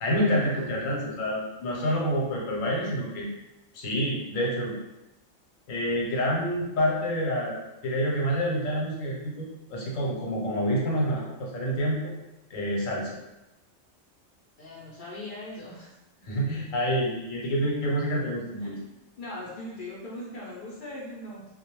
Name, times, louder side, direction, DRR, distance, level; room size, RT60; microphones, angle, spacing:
voice 1, 0.0-3.3 3.7-4.8 5.7-12.1 12.5-13.1 16.2-18.8, equal, 80° left, -3 dB, 1.1 m, -28 dB
voice 2, 14.6-15.9 18.6-18.8 19.2-21.5, left 1 dB, 55° left, -6 dB, 0.6 m, -40 dB
2.3 x 2.0 x 2.9 m, 0.95 s
omnidirectional pair, 1.4 m